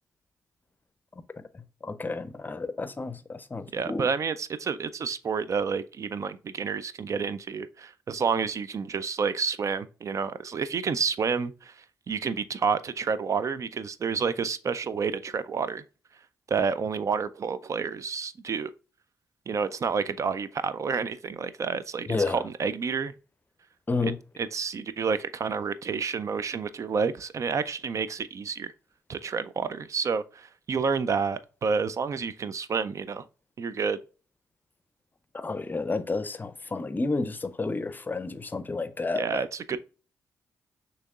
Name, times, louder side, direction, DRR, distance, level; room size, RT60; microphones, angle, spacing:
voice 1, 1.5-4.1 22.1-22.5 23.9-24.2 35.3-39.4, left 3 dB, 25° left, 0.5 m, -31 dB
voice 2, 3.7-15.8 16.5-18.7 19.5-23.1 24.0-24.1 24.4-28.7 29.1-33.3 33.6-34.0 39.1-39.8, right 5 dB, 50° right, 0.3 m, -29 dB
6.3 x 2.9 x 2.3 m
supercardioid pair, 50°, 7 cm